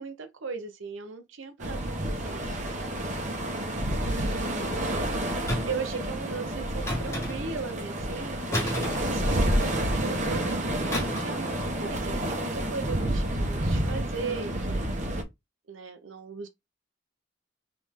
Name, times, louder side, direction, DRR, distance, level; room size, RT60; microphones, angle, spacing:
voice 1, 0.0-3.0 4.1-4.7 5.7-8.8 9.1-10.8 11.2-14.8 15.7-16.5, right 5 dB, 85° right, 0.7 m, -38 dB
sound 1, 1.6-15.2, right 1 dB, 40° right, 1.2 m, -29 dB
sound 2, 5.5-5.9 6.9-7.6 8.5-9.7 10.9-11.4 11.7-11.9, left 1 dB, 15° left, 1.6 m, -32 dB
4.2 x 3.4 x 3.5 m
head